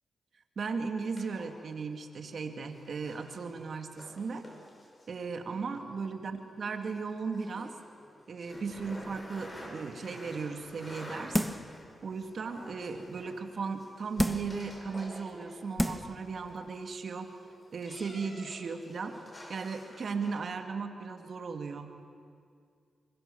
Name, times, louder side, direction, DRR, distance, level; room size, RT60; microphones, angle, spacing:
voice 1, 0.6-4.5 5.1-7.7 8.3-11.4 12.0-17.3 17.7-19.2 19.5-21.9, right 5 dB, 65° right, 6 dB, 2.2 m, -36 dB
sound 1, 1.1-20.4, left 1 dB, 30° left, 5.9 m, -50 dB
sound 2, 11.3-11.8 12.3-12.4 14.2-14.6 15.3-15.4 15.8-16.2 16.6-16.7, equal, 5° left, 1.5 m, -30 dB
25.0 x 23.0 x 7.0 m, 2.3 s
cardioid pair, 50°, 0 cm